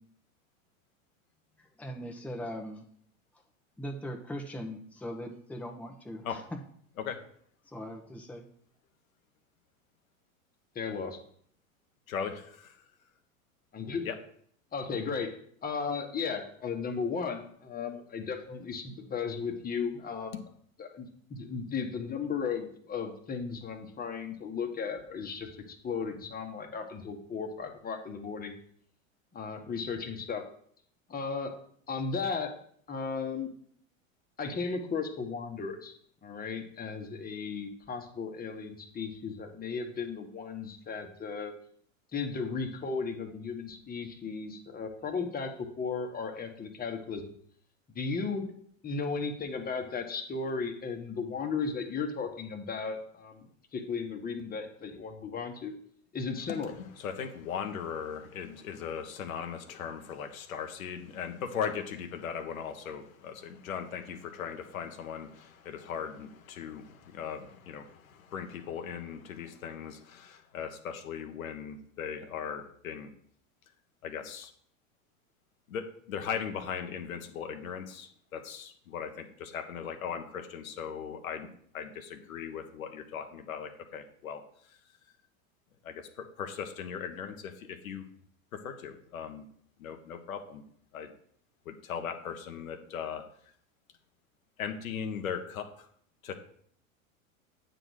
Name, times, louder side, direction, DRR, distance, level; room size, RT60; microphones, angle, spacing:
voice 1, 1.6-2.9 3.8-6.6 7.6-8.5, equal, 5° left, 1 dB, 1.1 m, -40 dB
voice 2, 10.7-11.2 13.7-14.1 14.7-15.4 15.6-20.4 20.8-28.5 29.3-30.4 31.1-31.5 31.9-32.5 32.9-33.5 34.4-35.9 36.2-41.5 42.1-47.3 47.9-48.5 48.8-53.5 53.7-55.7 56.1-56.7, left 5 dB, 20° left, 4 dB, 1.4 m, -35 dB
voice 3, 12.1-12.8 14.0-14.2 56.8-73.1 74.0-74.5 75.7-81.5 81.7-84.4 84.7-84.8 85.8-88.0 88.5-89.4 89.8-90.6 90.9-91.1 91.6-93.2 94.6-95.9 96.2-96.4, left 7 dB, 85° left, 5 dB, 1.2 m, -38 dB
9.0 x 3.9 x 6.4 m, 0.63 s
hypercardioid pair, 105°, 40 cm